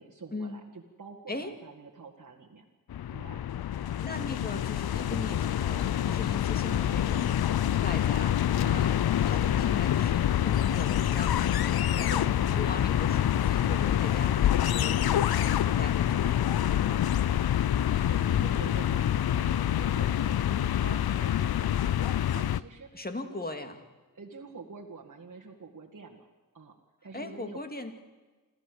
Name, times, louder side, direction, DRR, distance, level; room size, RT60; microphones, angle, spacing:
voice 1, 0.0-2.6 3.1-3.5 8.6-9.0 12.1-12.6 17.2-23.0 24.1-26.3 26.5-27.6, right 4 dB, 50° right, -2 dB, 2.0 m, -46 dB
sound 1, 2.9-22.6, left 11 dB, 70° left, 0.6 m, -26 dB
voice 2, 4.0-9.0 9.3-12.1 12.5-17.0 19.9-20.1 22.9-23.8 27.1-27.9, left 2 dB, 25° left, 6 dB, 2.3 m, -40 dB
26.0 x 14.0 x 8.1 m, 1.3 s
cardioid pair, 60°, 39 cm